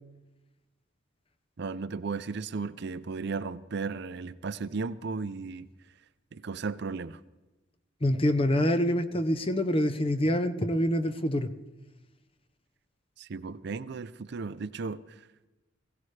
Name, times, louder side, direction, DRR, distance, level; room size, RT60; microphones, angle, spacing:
voice 1, 1.6-5.7 6.3-7.2 13.2-15.0, right 4 dB, 55° right, 0.5 m, -35 dB
voice 2, 8.0-11.5, equal, 30° left, 0.7 m, -26 dB
21.0 x 16.5 x 3.3 m
head